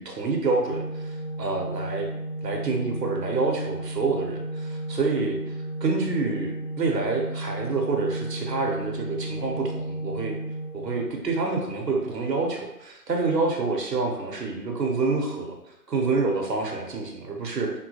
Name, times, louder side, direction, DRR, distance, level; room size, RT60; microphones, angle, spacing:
voice 1, 0.0-2.1 2.4-5.5 5.8-10.4 10.7-15.6 15.9-17.7, right 3 dB, 90° right, 1 dB, 0.9 m, -27 dB
Organ, 0.6-11.5, right 1 dB, 30° left, 0.5 m, -33 dB
3.6 x 2.2 x 2.7 m, 0.90 s
figure-of-eight pair, 160°, 48 cm